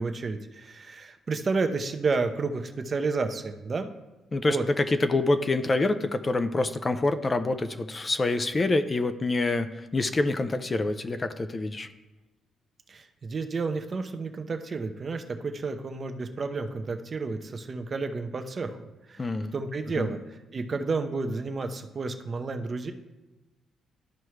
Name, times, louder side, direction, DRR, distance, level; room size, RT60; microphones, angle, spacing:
voice 1, 0.0-3.9 4.4-4.6 12.9-22.9, right 4 dB, 40° right, 6 dB, 0.7 m, -31 dB
voice 2, 4.3-11.9 19.2-19.5 20.0-20.1, left 2 dB, 30° left, 10 dB, 0.5 m, -26 dB
12.5 x 4.5 x 3.2 m, 1.1 s
cardioid pair, 90°, 0 cm